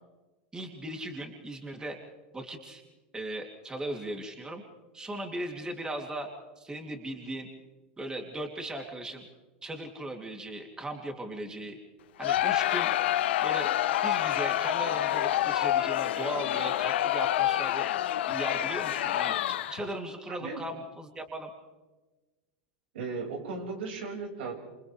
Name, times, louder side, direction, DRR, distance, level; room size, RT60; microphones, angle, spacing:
voice 1, 0.5-2.0 2.3-2.8 3.1-4.6 4.9-6.3 6.6-7.5 8.0-9.3 9.6-11.8 12.2-12.9 13.4-13.8 14.0-17.9 18.3-21.5, right 1 dB, 15° right, 2 dB, 3.0 m, -38 dB
Crowd, 12.2-19.9, left 13 dB, 80° left, 0.8 m, -27 dB
voice 2, 20.3-20.6 22.9-24.5, right 4 dB, 80° right, 1 dB, 5.8 m, -36 dB
28.0 x 27.5 x 3.4 m, 1.2 s
hypercardioid pair, 120°, 6 cm